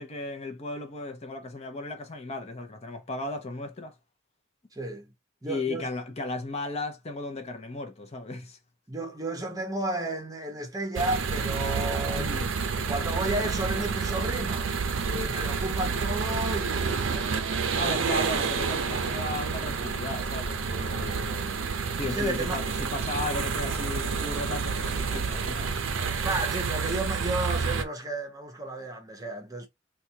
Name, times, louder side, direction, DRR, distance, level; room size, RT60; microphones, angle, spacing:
voice 1, 0.0-3.9 5.4-8.6 12.2-12.5 17.8-21.6 22.0-25.8, left 2 dB, 35° left, 0.7 m, -35 dB
voice 2, 4.7-5.1 5.4-5.9 8.9-12.3 12.9-14.7 15.1-17.2 22.1-22.6 26.2-29.7, right 2 dB, 20° right, 0.8 m, -32 dB
sound 1, 10.9-27.8, right 5 dB, 75° right, 0.6 m, -29 dB
4.2 x 2.4 x 2.8 m
head